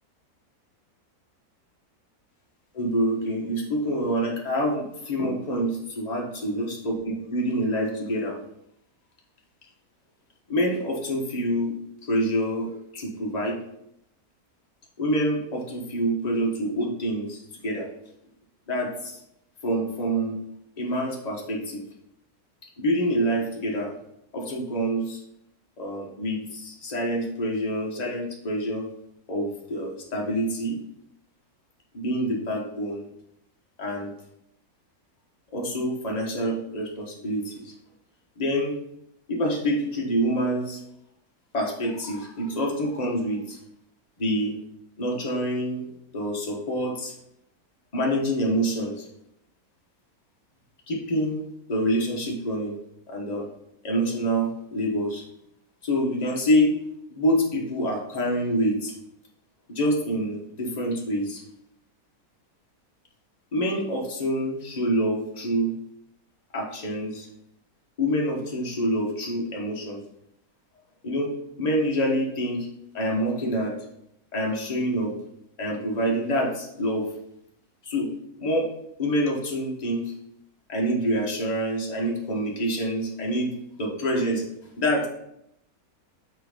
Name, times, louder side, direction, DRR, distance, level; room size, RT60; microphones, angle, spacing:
voice 1, 2.7-8.4 10.5-11.7 12.1-13.6 15.0-17.9 18.7-19.2 19.6-20.4 20.8-21.8 22.8-23.9 24.3-25.2 25.8-28.8 29.3-30.8 31.9-33.1 33.8-34.1 35.5-37.7 38.4-38.8 39.3-40.8 41.5-43.6 44.2-44.5 45.0-45.8 46.1-47.1 47.9-49.1 50.9-51.4 51.7-52.8 53.1-53.5 53.8-55.2 55.8-56.7 57.1-58.9 59.7-61.4 63.5-65.7 66.5-67.3 68.0-70.0 71.0-72.7 72.9-73.8 74.3-75.1 75.6-77.1 77.8-78.1 78.4-78.7 79.0-80.1 80.7-83.5 83.8-84.4 84.8-85.1, equal, 30° left, -2 dB, 1.4 m, -26 dB
6.0 x 4.7 x 5.0 m, 0.78 s
omnidirectional pair, 1.6 m